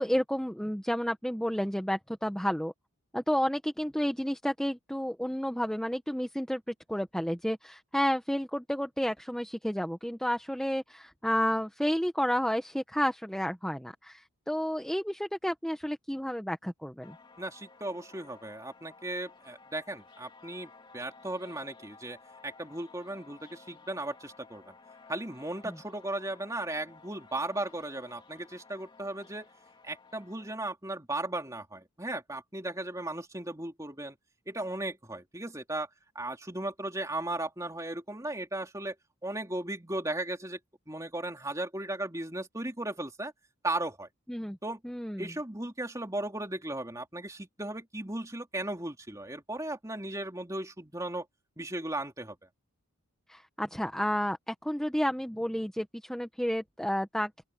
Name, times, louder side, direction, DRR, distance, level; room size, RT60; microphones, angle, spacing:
voice 1, 0.0-2.7 3.1-17.2 25.6-25.7 44.3-44.6 44.8-45.3 53.3-57.3, equal, 5° left, 1.1 m, -31 dB
sound 1, 17.0-30.6, left 4 dB, 20° left, 3.1 m, -55 dB
voice 2, 17.4-22.2 22.4-24.7 25.1-29.5 29.8-34.2 34.5-35.9 36.1-38.9 39.2-40.6 40.9-43.3 43.6-44.1 44.6-44.8 45.2-51.2 51.6-52.4, right 1 dB, 15° right, 3.1 m, -36 dB
open air
head